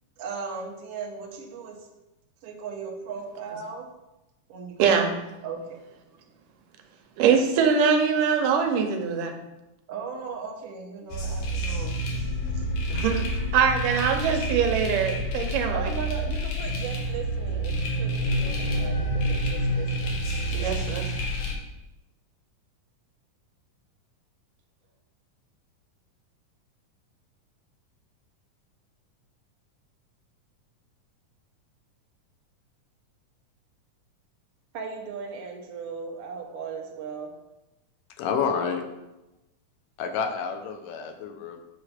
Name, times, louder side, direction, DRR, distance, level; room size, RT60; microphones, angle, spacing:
voice 1, 0.2-1.9 2.4-3.9 4.5-4.8 5.4-5.8 9.9-12.3 12.5-12.7 15.7-18.5 18.8-20.8 34.7-37.3, right 5 dB, 65° right, 1 dB, 1.6 m, -37 dB
voice 2, 4.8-5.1 7.2-9.3 12.9-15.9 20.5-21.0, right 6 dB, 80° right, 4 dB, 2.4 m, -23 dB
sound 1, 11.1-21.5, right 1 dB, 65° left, 2.0 m, -28 dB
voice 3, 38.2-38.9 40.0-41.6, left 6 dB, 90° left, 6 dB, 2.4 m, -29 dB
7.9 x 3.3 x 5.7 m, 0.98 s
omnidirectional pair, 3.7 m